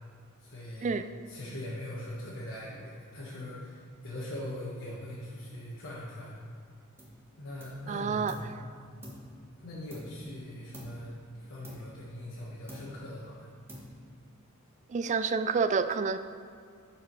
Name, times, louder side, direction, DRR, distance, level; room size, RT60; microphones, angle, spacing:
voice 1, 0.4-0.9 1.3-6.3 7.4-8.5 9.6-11.1 11.4-13.5, left 1 dB, 55° left, -7 dB, 1.4 m, -41 dB
sound 1, 7.0-7.3 7.6-8.6 9.0-10.4 10.7-11.1 11.6-12.4 12.7-13.2 13.7-14.2, equal, 10° right, 1.4 m, -47 dB
voice 2, 7.9-8.7 14.9-16.2, right 5 dB, 35° right, 11 dB, 0.3 m, -29 dB
11.5 x 4.9 x 4.7 m, 2.2 s
head